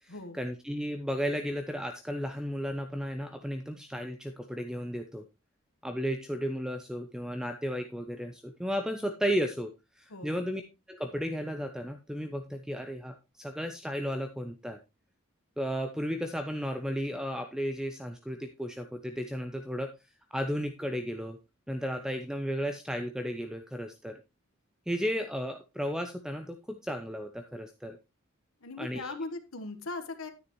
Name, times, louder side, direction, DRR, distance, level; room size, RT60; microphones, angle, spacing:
voice 1, 0.0-5.2 5.8-10.6 10.9-14.8 15.6-19.9 20.3-21.4 21.7-24.2 24.9-28.0 28.8-29.2, equal, 5° right, 7 dB, 0.5 m, -34 dB
voice 2, 10.1-10.5 28.6-30.3, left 3 dB, 85° left, 7 dB, 1.3 m, -39 dB
9.8 x 9.6 x 3.0 m, 0.26 s
head